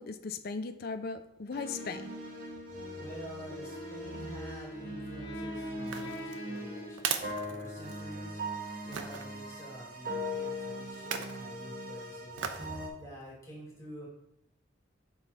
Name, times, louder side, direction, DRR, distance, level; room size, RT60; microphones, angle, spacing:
voice 1, 0.0-2.1, left 4 dB, 55° left, 9 dB, 0.5 m, -38 dB
sound 1, 1.5-12.9, equal, 50° right, 1.0 m, -40 dB
voice 2, 2.9-14.1, right 1 dB, 15° left, -5 dB, 2.7 m, -48 dB
Wind instrument woodwind instrument, 3.5-8.3, right 1 dB, 75° left, 1.1 m, -45 dB
sound 2, 5.8-8.2 8.9-9.3 10.9-11.4 12.4-12.7 13.2-13.3, right 7 dB, 80° right, 0.6 m, -38 dB
7.2 x 4.2 x 3.9 m, 0.80 s
head